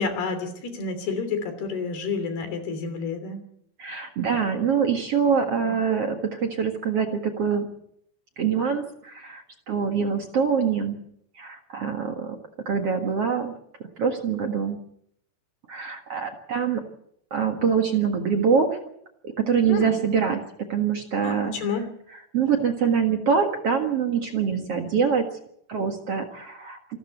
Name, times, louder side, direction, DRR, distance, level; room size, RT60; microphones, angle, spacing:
voice 1, 0.0-3.4 5.6-5.7 19.7-19.9 21.2-21.9, left 5 dB, 70° left, 9 dB, 5.0 m, -29 dB
voice 2, 3.8-7.7 8.4-11.0 11.4-12.4 12.7-13.5 14.0-14.8 15.7-16.8 17.3-18.8 19.2-20.4 20.7-21.5 22.3-25.2 25.7-26.8, right 6 dB, 50° right, 4 dB, 1.9 m, -24 dB
27.0 x 13.5 x 8.1 m, 0.72 s
omnidirectional pair, 4.8 m